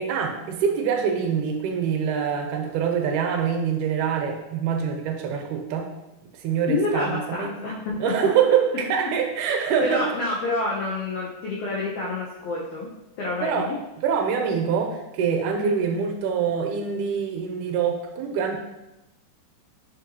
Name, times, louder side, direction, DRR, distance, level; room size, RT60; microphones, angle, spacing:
voice 1, 0.0-5.9 6.2-7.5 8.0-10.1 13.4-13.7 14.0-18.6, right 7 dB, 80° right, 3 dB, 2.0 m, -25 dB
voice 2, 6.7-8.3 9.8-12.9 13.2-13.8 15.6-15.7, left 2 dB, 85° left, -3 dB, 1.4 m, -28 dB
6.4 x 2.6 x 2.7 m, 0.95 s
omnidirectional pair, 3.5 m